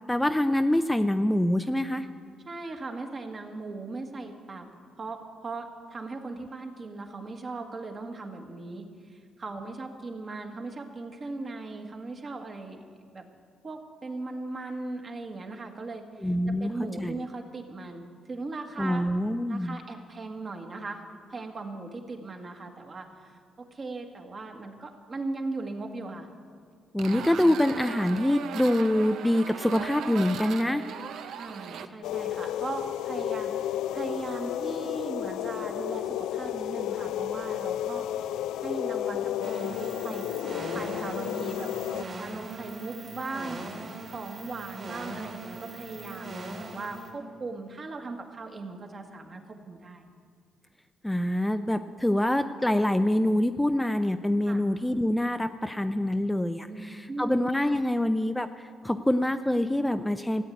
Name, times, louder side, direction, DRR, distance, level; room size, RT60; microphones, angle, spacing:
voice 1, 0.1-2.1 16.2-16.7 17.0-17.2 18.8-19.8 26.9-30.8 51.0-60.4, left 1 dB, 5° left, 9 dB, 0.4 m, -25 dB
voice 2, 2.4-4.7 5.0-12.8 13.1-13.2 13.6-16.3 16.6-19.0 19.5-21.0 21.3-26.3 31.4-38.1 38.6-40.4 40.7-43.6 44.1-50.1 54.5-54.6 56.6-56.8 57.1-57.4, right 3 dB, 40° right, 3 dB, 1.7 m, -38 dB
sound 1, 27.0-31.9, right 7 dB, 75° right, 0.7 m, -38 dB
sound 2, 32.0-42.0, left 12 dB, 85° left, 0.4 m, -32 dB
sound 3, 39.4-47.1, right 2 dB, 55° right, 2.8 m, -40 dB
14.5 x 8.3 x 9.2 m, 2.1 s
cardioid pair, 90°, 0 cm